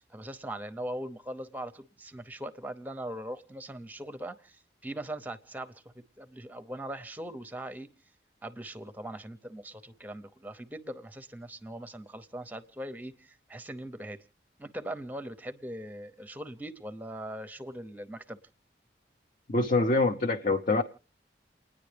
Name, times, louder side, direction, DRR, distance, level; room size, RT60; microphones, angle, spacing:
voice 1, 0.0-7.9 8.4-14.2 14.6-18.4, right 1 dB, 10° right, 0.7 m, -40 dB
voice 2, 19.5-20.8, left 3 dB, 45° left, 0.7 m, -25 dB
29.5 x 10.0 x 3.3 m
head